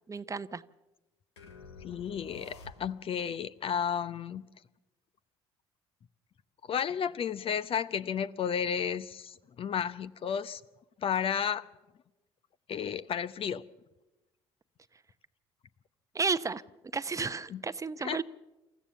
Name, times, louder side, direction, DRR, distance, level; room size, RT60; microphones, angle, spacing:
voice 1, 0.1-0.6 16.1-16.6 16.9-18.2, right 4 dB, 25° right, 0.8 m, -32 dB
sound 1, 1.4-3.2, left 3 dB, 85° left, 1.4 m, -50 dB
voice 2, 1.8-4.4 6.7-10.6 11.0-11.7 12.7-13.6 17.5-17.6 18.0-18.2, left 8 dB, 45° left, 0.8 m, -32 dB
27.5 x 14.5 x 7.0 m
hypercardioid pair, 55°, 14 cm